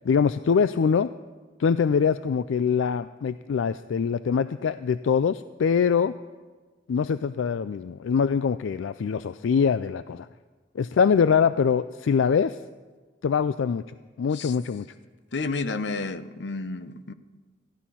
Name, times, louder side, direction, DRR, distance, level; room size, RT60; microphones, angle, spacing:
voice 1, 0.0-1.1 1.6-6.1 6.9-10.3 10.8-12.6 13.2-14.9, left 6 dB, 80° left, 14 dB, 0.3 m, -23 dB
voice 2, 15.3-17.1, left 3 dB, 60° left, 12 dB, 0.7 m, -31 dB
15.0 x 12.0 x 5.6 m, 1.4 s
head